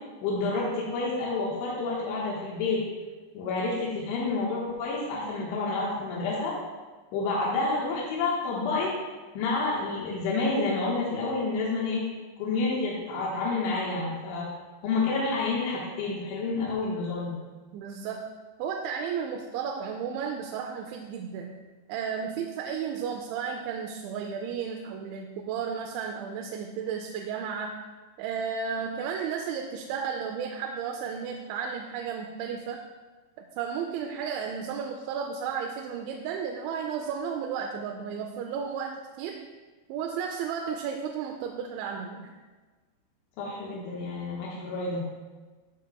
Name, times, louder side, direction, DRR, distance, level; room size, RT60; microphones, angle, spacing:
voice 1, 0.2-2.8 3.4-6.6 7.1-9.0 9.4-12.0 12.4-14.5 14.8-17.4 43.4-45.1, left 3 dB, 90° left, -5 dB, 3.6 m, -29 dB
voice 2, 17.7-18.3 18.6-21.6 21.9-27.7 28.2-32.8 33.6-39.5 39.9-42.3, right 6 dB, 90° right, 3 dB, 2.9 m, -33 dB
13.5 x 7.8 x 2.3 m, 1.3 s
omnidirectional pair, 5.2 m